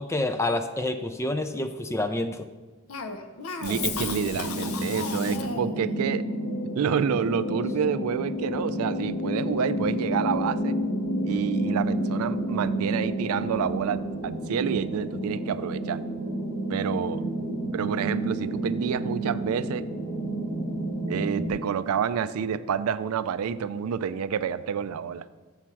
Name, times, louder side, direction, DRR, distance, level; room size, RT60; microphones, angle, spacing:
voice 1, 0.0-2.5, left 2 dB, 10° left, 9 dB, 0.3 m, -28 dB
Cough, 2.9-5.8, left 5 dB, 75° left, 0.7 m, -34 dB
voice 2, 3.6-6.3 6.7-10.8 11.2-16.0 16.7-17.2 17.7-19.9 21.1-25.2, right 7 dB, 75° right, 15 dB, 0.3 m, -28 dB
sound 1, 3.7-21.5, right 1 dB, 60° left, 1.8 m, -30 dB
7.2 x 4.4 x 6.0 m, 1.4 s
head